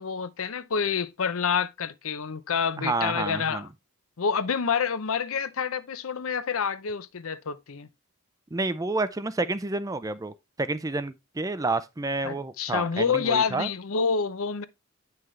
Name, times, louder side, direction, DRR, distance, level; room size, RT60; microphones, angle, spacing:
voice 1, 0.0-3.7 4.2-7.9 12.2-14.6, left 6 dB, 75° left, 0.6 m, -28 dB
voice 2, 2.8-3.7 8.5-13.7, right 3 dB, 15° right, 0.4 m, -29 dB
9.1 x 5.8 x 3.2 m
head